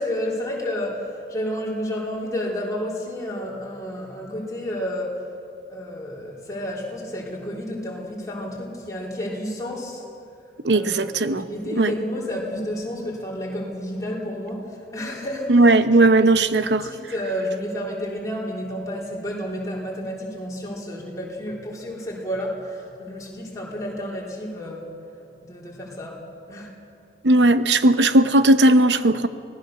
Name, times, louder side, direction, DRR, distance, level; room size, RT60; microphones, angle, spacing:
voice 1, 0.0-5.3 5.7-10.0 10.7-24.9 25.4-26.8, equal, 20° left, -4 dB, 3.8 m, -31 dB
voice 2, 10.6-11.4 11.8-11.9 15.5-16.8 27.2-29.3, right 2 dB, 85° right, 11 dB, 0.9 m, -17 dB
25.0 x 18.0 x 6.7 m, 2.5 s
head